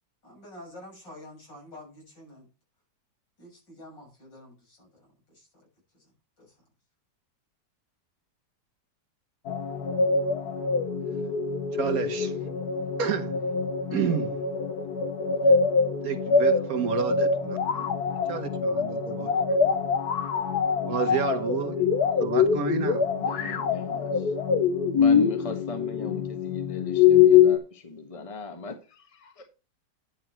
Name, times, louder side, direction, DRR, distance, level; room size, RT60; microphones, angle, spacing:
voice 1, 0.2-2.5 3.4-5.7 5.9-6.6, left 1 dB, 85° left, 7.5 m, -48 dB
sound 1, 9.5-27.6, left 6 dB, 65° left, 1.5 m, -24 dB
voice 2, 11.7-12.3 13.0-13.4 13.9-14.4 16.0-17.9 18.3-19.3 20.8-21.8 22.2-23.0, right 7 dB, 60° right, 1.3 m, -30 dB
voice 3, 23.2-24.3 24.9-29.5, left 3 dB, 20° left, 1.3 m, -38 dB
10.5 x 6.2 x 4.4 m
omnidirectional pair, 1.9 m